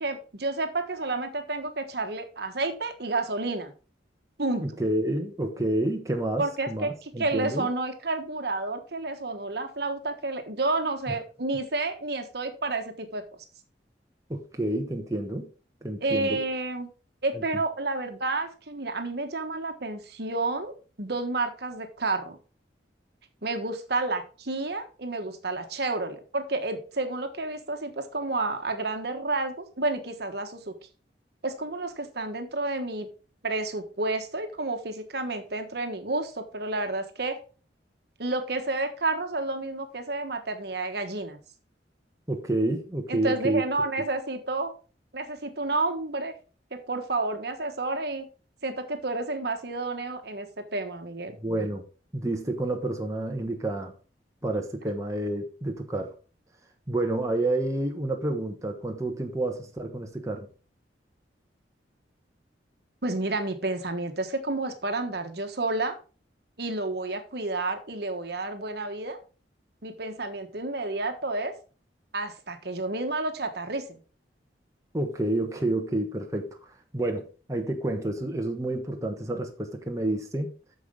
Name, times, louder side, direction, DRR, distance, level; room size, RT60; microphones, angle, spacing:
voice 1, 0.0-3.7 4.4-4.6 6.4-13.2 16.0-16.9 17.2-20.7 21.0-22.4 23.4-30.7 31.4-33.1 33.4-37.4 38.2-41.4 43.1-44.7 45.1-46.3 46.7-48.2 48.6-51.4 63.0-66.0 66.6-69.2 69.8-71.5 72.1-74.0, right 2 dB, 60° right, 1.3 m, -30 dB
voice 2, 4.6-7.7 11.1-11.2 14.3-15.5 15.8-16.4 17.3-17.4 42.3-43.7 51.4-51.8 52.1-53.9 54.4-56.1 56.9-60.5 74.9-80.5, right 1 dB, 20° right, 1.2 m, -29 dB
9.4 x 6.6 x 3.8 m
head